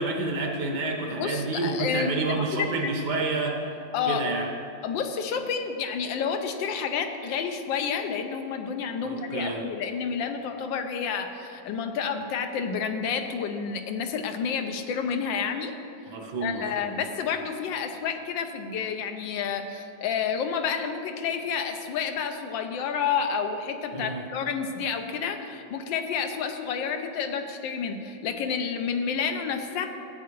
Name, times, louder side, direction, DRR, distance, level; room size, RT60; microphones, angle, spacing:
voice 1, 0.0-3.6 4.1-4.5 9.0-9.6 16.1-16.9 23.9-24.2, right 3 dB, 65° right, 2 dB, 1.5 m, -29 dB
voice 2, 1.1-2.2 2.5-2.9 3.9-4.3 4.8-15.7 16.4-29.9, left 6 dB, 80° left, 6 dB, 1.4 m, -30 dB
13.0 x 8.3 x 3.0 m, 2.8 s
omnidirectional pair, 2.1 m